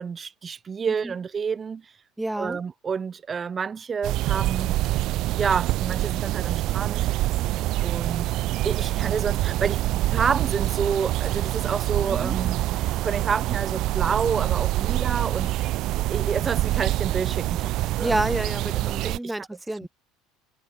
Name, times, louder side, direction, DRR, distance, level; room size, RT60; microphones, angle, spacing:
voice 1, 0.0-1.8 2.4-4.8 5.4-7.1 7.8-8.3 8.6-15.7 16.1-17.7 18.0-18.2 18.9-19.5, right 6 dB, 30° right, 2.1 m, -29 dB
voice 2, 2.2-2.6 12.1-12.3 18.0-19.9, right 1 dB, 5° right, 1.6 m, -29 dB
sound 1, 4.0-19.2, right 16 dB, 60° right, 1.1 m, -26 dB
hypercardioid pair, 85°, 0 cm